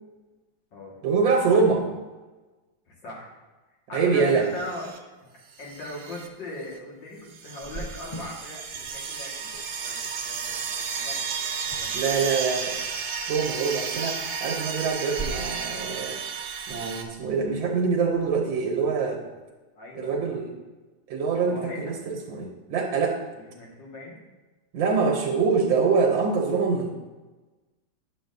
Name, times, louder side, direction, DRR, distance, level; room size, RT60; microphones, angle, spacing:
voice 1, 1.0-1.9 3.9-4.5 11.9-12.8 13.3-16.2 16.7-19.2 19.9-20.5 21.1-23.2 24.7-26.9, right 5 dB, 85° right, 1 dB, 1.7 m, -24 dB
voice 2, 2.9-3.3 3.9-5.1 5.6-9.6 9.8-11.4 11.8-12.2 19.8-20.4 21.5-22.0 23.3-24.2, left 1 dB, 70° left, -3 dB, 2.4 m, -39 dB
sound 1, 4.6-5.0 5.5-6.3 6.6-6.8 7.3-17.0, right 6 dB, 65° right, 1.2 m, -33 dB
Cricket, 7.6-19.1, right 2 dB, 20° left, 1.1 m, -45 dB
9.9 x 6.7 x 2.6 m, 1.2 s
omnidirectional pair, 2.1 m